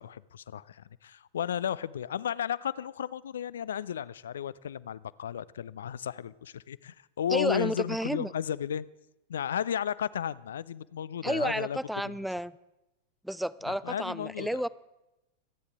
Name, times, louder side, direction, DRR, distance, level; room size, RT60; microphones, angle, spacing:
voice 1, 0.0-8.9 9.3-11.8 12.0-12.2 13.7-14.6, left 9 dB, 65° left, 19 dB, 0.4 m, -34 dB
voice 2, 7.3-8.3 11.2-12.5 13.2-14.7, equal, ahead, 19 dB, 0.4 m, -31 dB
26.5 x 9.7 x 3.6 m, 0.95 s
figure-of-eight pair, 90°, 0 cm